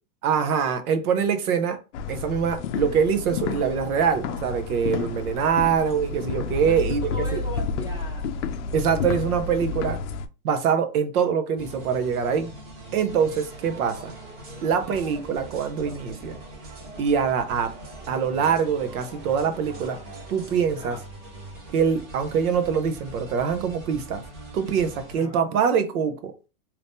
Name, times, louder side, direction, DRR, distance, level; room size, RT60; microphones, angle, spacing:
voice 1, 0.2-1.8 2.1-7.4 8.7-10.0 10.4-12.5 12.9-14.1 14.6-16.4 17.0-17.7 18.1-20.0 20.3-21.0 21.7-24.2 24.5-26.3, right 7 dB, 70° right, 0.8 m, -24 dB
sound 1, 1.9-10.3, left 5 dB, 55° left, 0.5 m, -30 dB
voice 2, 6.6-8.9 20.8-21.0 24.7-24.9 25.2-25.4, left 1 dB, 10° right, 1.0 m, -39 dB
sound 2, 11.6-25.2, right 2 dB, 35° right, 1.2 m, -43 dB
sound 3, 13.3-20.6, right 2 dB, 50° right, 1.4 m, -46 dB
2.9 x 2.6 x 3.5 m
supercardioid pair, 150°, 45 cm